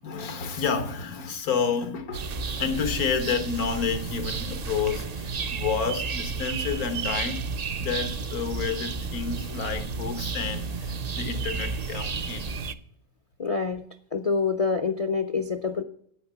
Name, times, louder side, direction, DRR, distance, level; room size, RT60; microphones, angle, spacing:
voice 1, 0.0-7.4 7.8-12.5, left 6 dB, 90° left, 1.7 m, -30 dB
sound 1, 2.1-12.7, right 4 dB, 65° right, 0.4 m, -32 dB
voice 2, 13.4-13.8 14.1-15.8, left 5 dB, 50° left, 0.4 m, -26 dB
8.9 x 8.6 x 6.9 m
omnidirectional pair, 1.5 m